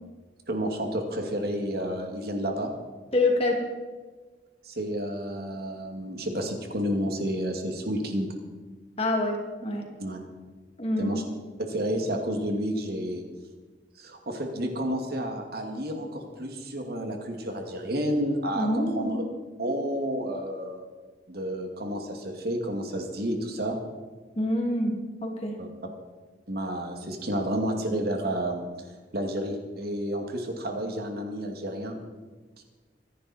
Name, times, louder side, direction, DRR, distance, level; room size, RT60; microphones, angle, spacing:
voice 1, 0.5-2.7 4.6-8.3 10.0-10.2 11.0-11.2 11.6-13.2 14.0-19.2 19.6-20.8 21.3-23.8 25.6-25.7 26.5-28.6 29.1-32.0, equal, 55° right, 3 dB, 2.2 m, -30 dB
voice 2, 3.1-3.6 9.0-9.8 10.8-11.1 18.5-19.2 24.4-25.6, left 1 dB, 30° left, 1 dB, 2.5 m, -26 dB
24.5 x 11.0 x 4.3 m, 1.3 s
head